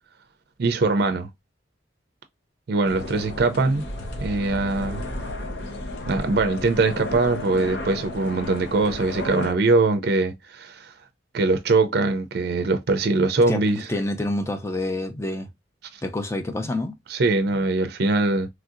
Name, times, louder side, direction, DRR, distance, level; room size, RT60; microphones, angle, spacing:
voice 1, 0.6-1.3 2.7-3.8 4.2-5.0 6.1-10.9 11.3-13.9 17.1-18.5, right 3 dB, 55° right, 0.4 m, -22 dB
sound 1, 2.8-9.5, left 1 dB, 70° left, 0.7 m, -33 dB
voice 2, 13.9-15.5 16.0-17.0, left 2 dB, 15° left, 0.4 m, -27 dB
3.1 x 2.7 x 2.4 m
head